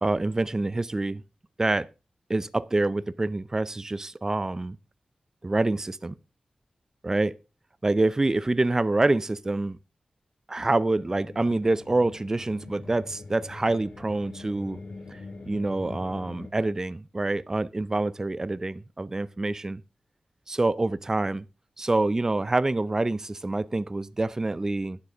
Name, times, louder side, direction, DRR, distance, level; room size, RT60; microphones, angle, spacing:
voice 1, 0.0-1.2 1.6-1.9 2.3-4.8 5.4-6.2 7.0-7.4 7.8-9.8 10.5-14.8 15.1-15.2 15.5-19.8 20.5-21.4 21.8-25.0, right 2 dB, 25° right, 0.5 m, -26 dB
sound 1, 10.9-16.5, left 3 dB, 65° left, 2.2 m, -43 dB
11.5 x 9.8 x 3.6 m
wide cardioid pair, 130°, 2 cm